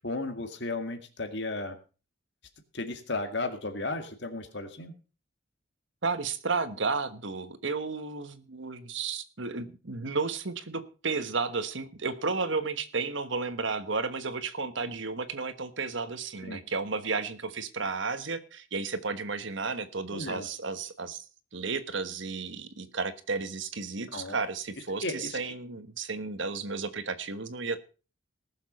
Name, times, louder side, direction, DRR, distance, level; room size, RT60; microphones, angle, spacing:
voice 1, 0.0-1.8 2.7-4.9 16.4-16.6 20.1-20.5 24.1-24.4 25.0-25.4, left 2 dB, 60° left, 6 dB, 2.1 m, -34 dB
voice 2, 6.0-21.2 21.5-27.8, right 4 dB, 65° right, 11 dB, 1.3 m, -33 dB
18.5 x 7.3 x 5.3 m, 0.35 s
head